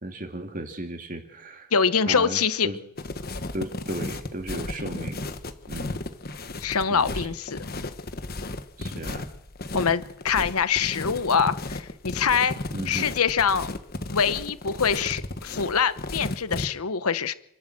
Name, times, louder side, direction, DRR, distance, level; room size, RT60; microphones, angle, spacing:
voice 1, 0.0-1.7 2.1-2.8 3.5-5.3 5.7-6.0 6.9-7.3 8.8-9.3 12.7-13.1, right 1 dB, 40° right, 2.2 m, -35 dB
voice 2, 1.7-2.7 6.6-7.7 9.7-12.5 12.9-13.7 14.1-17.3, left 6 dB, 90° left, 1.0 m, -24 dB
sound 1, 3.0-16.7, left 2 dB, 45° left, 1.3 m, -34 dB
28.5 x 12.0 x 7.7 m
head